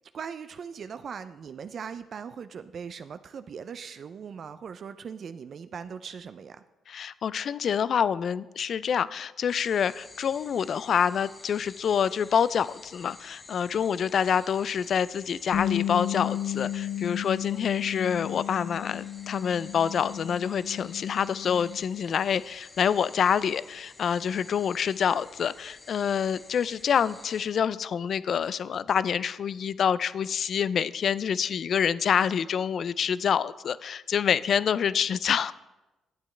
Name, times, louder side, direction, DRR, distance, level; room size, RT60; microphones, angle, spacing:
voice 1, 0.1-6.6, right 6 dB, 55° right, 11 dB, 0.3 m, -40 dB
voice 2, 6.9-35.5, left 7 dB, 55° left, 18 dB, 0.3 m, -27 dB
sound 1, 9.5-27.5, left 3 dB, 30° left, 1.0 m, -51 dB
Bass guitar, 15.5-21.8, left 11 dB, 80° left, 0.8 m, -33 dB
12.0 x 8.5 x 3.2 m, 1.0 s
cardioid pair, 90°, 0 cm